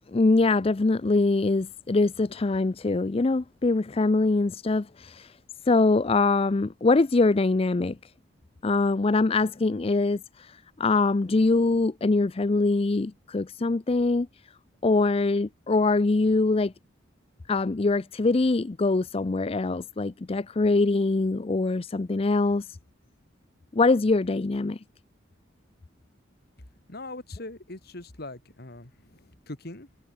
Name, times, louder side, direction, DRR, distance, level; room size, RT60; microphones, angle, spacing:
voice 1, 0.1-5.4 5.6-8.1 8.6-14.3 14.8-16.7 17.5-22.8 23.7-24.8, left 3 dB, 30° left, 0.5 m, -23 dB
voice 2, 26.9-29.9, left 2 dB, 55° left, 2.4 m, -41 dB
head